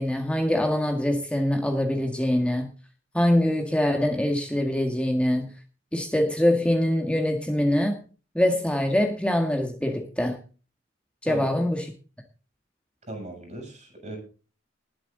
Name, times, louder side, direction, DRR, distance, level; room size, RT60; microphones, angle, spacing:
voice 1, 0.0-2.7 3.1-5.5 5.9-7.9 8.4-10.4 11.2-11.9, left 1 dB, 5° left, 3 dB, 1.8 m, -24 dB
voice 2, 13.1-14.2, right 1 dB, 40° right, 3 dB, 7.4 m, -37 dB
20.5 x 7.8 x 4.0 m, 0.36 s
head